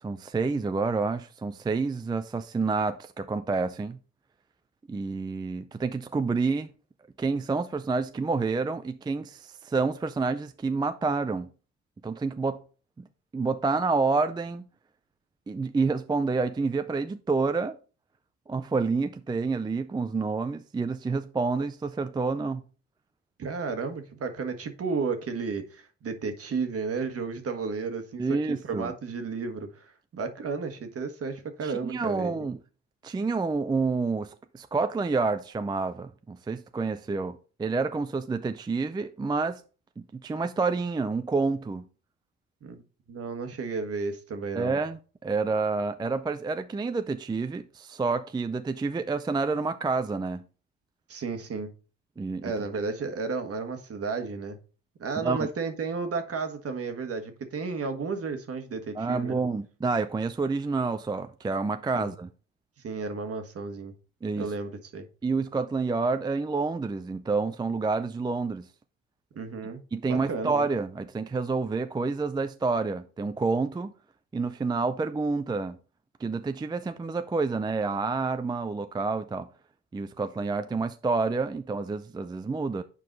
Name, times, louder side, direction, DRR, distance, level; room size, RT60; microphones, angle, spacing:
voice 1, 0.0-4.0 4.9-6.7 7.2-11.5 12.0-12.6 13.0-13.1 13.3-14.6 15.5-17.8 18.5-22.6 28.2-28.9 31.6-32.6 33.0-39.6 40.0-41.9 44.5-50.4 52.2-52.5 55.2-55.5 58.9-62.3 64.2-64.5 65.2-68.7 69.9-73.9 74.3-75.8 76.2-79.5 79.9-82.8, right 4 dB, 15° right, 0.4 m, -28 dB
voice 2, 23.4-28.2 28.5-32.5 42.6-42.8 43.1-44.7 51.1-51.7 52.4-54.6 55.0-59.4 62.0-62.1 62.8-63.9 64.4-65.1 69.3-70.5, right 4 dB, 50° right, 1.3 m, -33 dB
7.6 x 4.7 x 3.9 m
cardioid pair, 90°, 30 cm